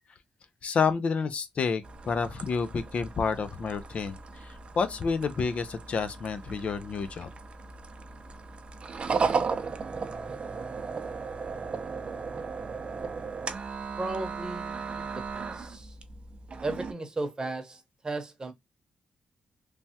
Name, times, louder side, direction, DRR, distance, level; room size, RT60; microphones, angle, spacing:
voice 1, 0.6-7.3, left 5 dB, 55° left, 0.4 m, -29 dB
sound 1, 1.8-16.9, right 5 dB, 45° right, 0.5 m, -36 dB
voice 2, 14.0-15.9 16.6-18.5, right 2 dB, 30° right, 0.9 m, -35 dB
3.3 x 2.2 x 2.7 m
cardioid pair, 75°, 3 cm